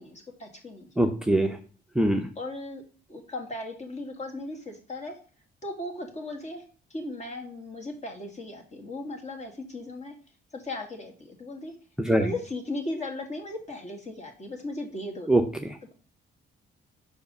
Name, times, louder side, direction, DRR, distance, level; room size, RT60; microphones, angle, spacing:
voice 1, 0.0-0.9 2.4-2.8 3.1-5.2 5.6-6.6 6.9-10.1 10.5-11.7 12.1-15.3, left 2 dB, 35° left, 2 dB, 2.0 m, -37 dB
voice 2, 1.0-1.6 1.9-2.3 12.0-12.3 15.3-15.8, right 1 dB, 5° right, 5 dB, 0.6 m, -23 dB
5.6 x 4.7 x 5.3 m, 0.39 s
cardioid pair, 90°, 20 cm